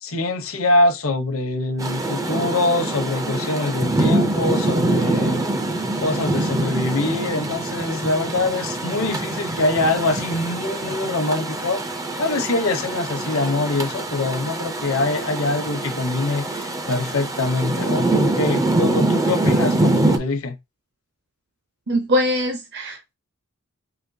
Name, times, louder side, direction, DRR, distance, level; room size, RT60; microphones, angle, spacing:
voice 1, 0.0-5.4 6.0-11.8 12.2-20.6, left 2 dB, 65° left, 0.9 m, -24 dB
Rain, 1.8-20.2, right 2 dB, 15° right, 0.4 m, -24 dB
voice 2, 21.9-23.1, equal, 50° right, 0.7 m, -22 dB
5.0 x 2.5 x 2.7 m
head